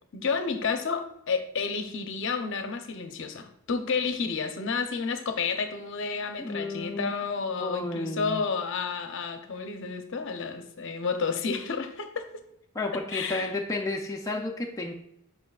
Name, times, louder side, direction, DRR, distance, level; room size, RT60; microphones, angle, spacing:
voice 1, 0.1-12.4 13.1-13.5, left 5 dB, 60° left, 7 dB, 0.6 m, -31 dB
voice 2, 6.4-7.1 7.6-8.4 12.7-14.9, left 2 dB, 15° left, 0 dB, 0.4 m, -32 dB
8.2 x 5.4 x 2.3 m, 0.75 s
head